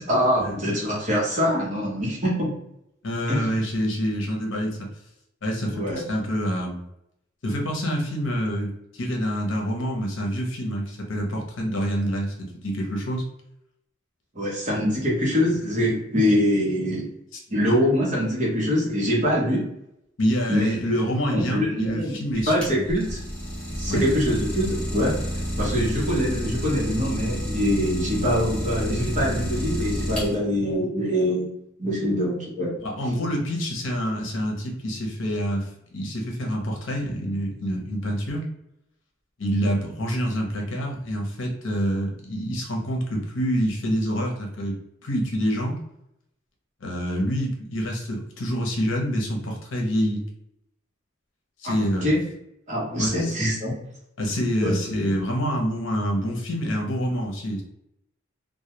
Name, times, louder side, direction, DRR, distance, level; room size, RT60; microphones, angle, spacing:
voice 1, 0.0-2.5 3.3-3.4 5.7-6.0 14.3-17.1 17.5-19.7 20.5-21.0 21.3-22.2 22.5-23.2 23.8-25.2 25.6-31.5 31.8-32.7 51.6-52.2 52.7-53.7 54.6-54.8, equal, 35° right, -4 dB, 0.8 m, -24 dB
voice 2, 3.0-4.8 5.4-6.8 7.4-13.2 17.3-17.4 20.2-22.8 23.9-24.0 32.8-38.5 39.4-45.8 46.8-50.2 51.6-52.1 53.0-53.3 54.2-57.6, equal, 75° left, 0 dB, 0.7 m, -27 dB
Idling, 22.3-30.7, equal, 5° left, 0.7 m, -29 dB
2.2 x 2.2 x 2.8 m, 0.80 s
head